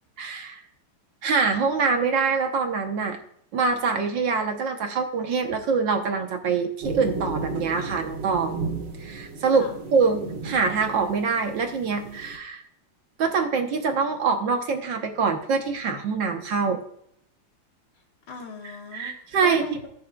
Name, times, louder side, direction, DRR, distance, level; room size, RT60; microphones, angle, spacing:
voice 1, 0.2-0.6 1.2-3.2 3.5-8.6 9.0-9.7 9.9-12.6 13.2-16.8 18.9-19.7, right 5 dB, 65° right, 4 dB, 1.6 m, -24 dB
sound 1, 6.8-12.4, right 3 dB, 85° right, 2.3 m, -34 dB
voice 2, 18.3-19.9, left 4 dB, 75° left, 2 dB, 2.3 m, -39 dB
19.0 x 6.3 x 2.3 m, 0.69 s
omnidirectional pair, 2.4 m